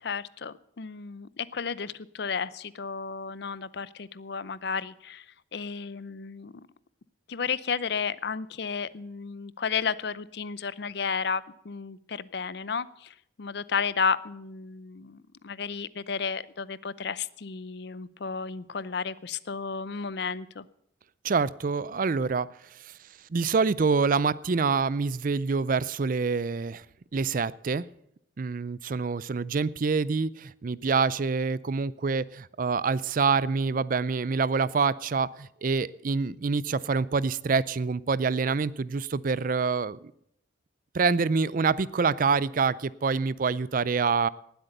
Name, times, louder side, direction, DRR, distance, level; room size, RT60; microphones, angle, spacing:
voice 1, 0.0-5.3 5.5-6.5 7.3-20.6, left 5 dB, 60° left, 18 dB, 0.6 m, -33 dB
voice 2, 21.2-22.5 22.7-23.0 23.3-26.8 27.1-27.8 28.4-40.1 40.9-44.3, right 4 dB, 45° right, 20 dB, 0.4 m, -26 dB
19.0 x 8.1 x 6.6 m, 0.73 s
head